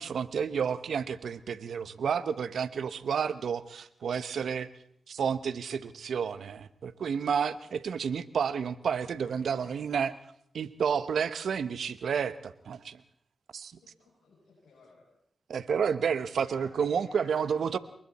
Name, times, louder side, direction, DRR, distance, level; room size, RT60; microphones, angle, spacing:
voice 1, 0.0-4.7 5.1-10.1 10.5-13.0 13.5-13.7 15.5-17.8, right 7 dB, 80° right, 14 dB, 1.0 m, -30 dB
voice 2, 9.1-9.8 13.8-15.0 16.3-17.5, left 4 dB, 80° left, -5 dB, 7.6 m, -55 dB
28.5 x 22.5 x 4.3 m, 0.71 s
supercardioid pair, 45°, 0 cm